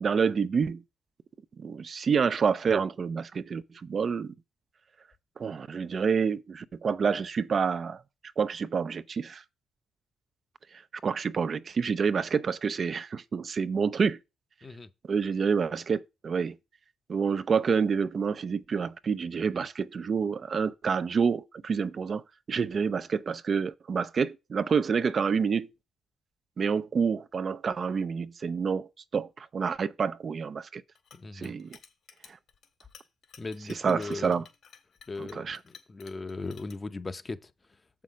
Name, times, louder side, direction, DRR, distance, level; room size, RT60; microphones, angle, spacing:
voice 1, 0.0-0.8 1.6-4.3 5.4-8.0 8.4-9.4 11.0-14.2 15.1-16.6 17.1-22.2 22.5-25.7 26.6-30.8 31.3-31.8 33.8-34.4 35.2-35.6, right 6 dB, 45° right, 0.4 m, -28 dB
Chink clink, 31.0-36.7, left 7 dB, 65° left, 2.1 m, -54 dB
voice 2, 31.1-31.5 33.4-34.4 35.1-37.5, left 3 dB, 30° left, 0.7 m, -38 dB
7.3 x 5.7 x 5.0 m
cardioid pair, 90°, 0 cm